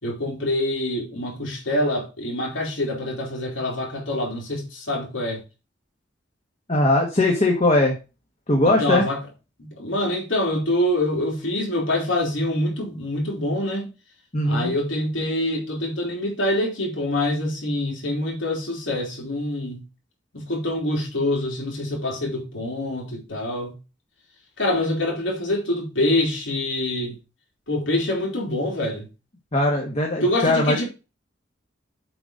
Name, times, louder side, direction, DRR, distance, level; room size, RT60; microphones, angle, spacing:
voice 1, 0.0-5.4 8.7-9.2 9.6-13.9 14.4-19.8 20.3-23.7 24.6-27.2 27.7-29.1 30.2-30.9, left 1 dB, 85° left, 3.4 m, -25 dB
voice 2, 6.7-7.9 8.5-9.0 14.3-14.7 29.5-30.8, left 1 dB, 35° left, 1.4 m, -20 dB
7.9 x 4.0 x 5.1 m
head